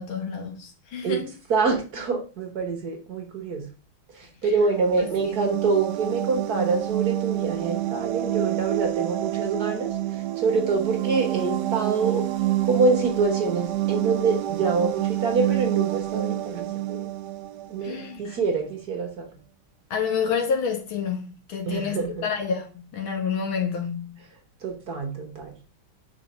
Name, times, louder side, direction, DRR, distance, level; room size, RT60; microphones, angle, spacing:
voice 1, 0.0-1.3 17.8-18.4 19.9-24.2, left 6 dB, 70° left, 2.1 m, -29 dB
voice 2, 1.5-3.7 4.1-12.2 12.7-17.1 17.7-19.3 21.7-22.2 24.6-25.5, right 4 dB, 50° right, 1.6 m, -26 dB
sound 1, 4.6-18.2, right 14 dB, 75° right, 0.9 m, -28 dB
5.1 x 4.5 x 5.6 m
omnidirectional pair, 2.3 m